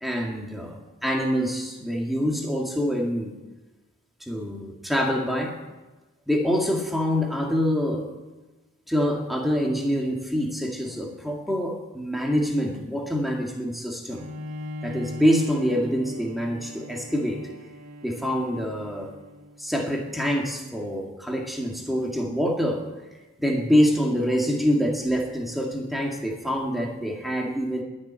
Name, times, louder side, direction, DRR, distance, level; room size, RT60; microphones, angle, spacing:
voice 1, 0.0-3.4 4.2-5.6 6.3-8.1 8.9-14.3 14.8-17.4 18.0-19.1 19.6-22.9 23.4-27.8, equal, ahead, -1 dB, 2.0 m, -25 dB
Bowed string instrument, 14.1-19.8, left 1 dB, 90° right, 1.8 m, -39 dB
21.0 x 7.3 x 8.9 m, 1.2 s
head